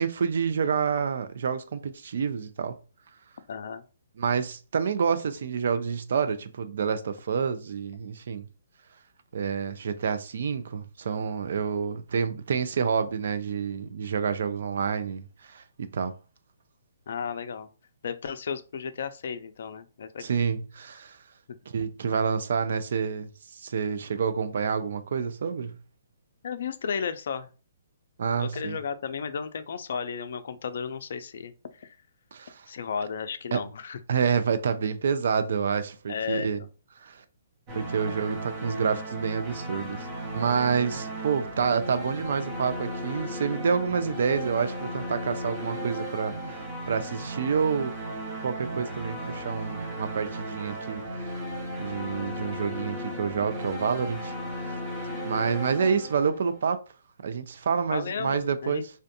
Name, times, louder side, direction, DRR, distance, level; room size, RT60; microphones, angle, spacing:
voice 1, 0.0-2.7 4.2-8.5 9.3-16.1 20.2-21.2 21.7-25.8 28.2-28.8 32.3-32.7 33.5-33.6 34.1-36.6 37.0-37.2 37.7-40.1 40.3-47.9 48.4-51.3 51.8-54.8 55.2-56.8 57.2-58.9, right 6 dB, 65° right, 0.3 m, -28 dB
voice 2, 3.5-3.8 17.1-17.7 18.0-20.2 26.4-27.5 28.4-31.5 31.8-32.0 32.7-34.0 36.1-36.5 57.9-58.8, left 6 dB, 60° left, 0.3 m, -34 dB
sound 1, 37.7-56.6, right 1 dB, 30° right, 0.8 m, -35 dB
2.5 x 2.2 x 2.6 m
hypercardioid pair, 155°, 0 cm